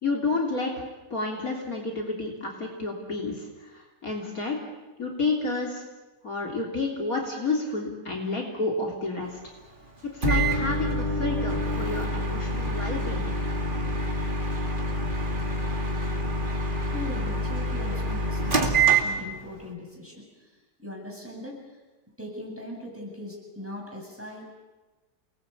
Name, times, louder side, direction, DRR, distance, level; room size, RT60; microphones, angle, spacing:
voice 1, 0.0-0.7 1.1-4.6 5.0-5.8 6.2-9.4 10.1-13.4, left 3 dB, 55° left, 0 dB, 3.8 m, -30 dB
Microwave oven, 10.2-19.6, right 1 dB, 30° right, 2.7 m, -26 dB
voice 2, 16.9-20.5 20.8-21.6 22.2-24.5, left 1 dB, 5° right, -2 dB, 7.8 m, -40 dB
29.0 x 20.5 x 8.5 m, 1.2 s
omnidirectional pair, 1.8 m